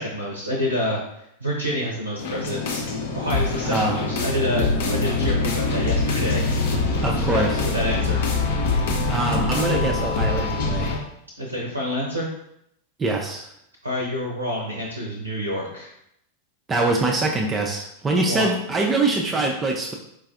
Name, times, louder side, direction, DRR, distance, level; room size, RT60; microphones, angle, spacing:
voice 1, 0.0-2.8 3.1-6.4 7.3-8.2 11.4-12.3 13.8-15.9 18.3-18.5, equal, 85° right, -2 dB, 0.6 m, -27 dB
sound 1, 2.2-11.0, left 3 dB, 60° left, 0.6 m, -24 dB
voice 2, 3.7-4.0 7.0-7.6 9.1-11.0 13.0-13.5 16.7-19.9, right 2 dB, 20° right, 1 dB, 0.4 m, -24 dB
4.4 x 2.4 x 2.5 m, 0.76 s
figure-of-eight pair, 90°, 0 cm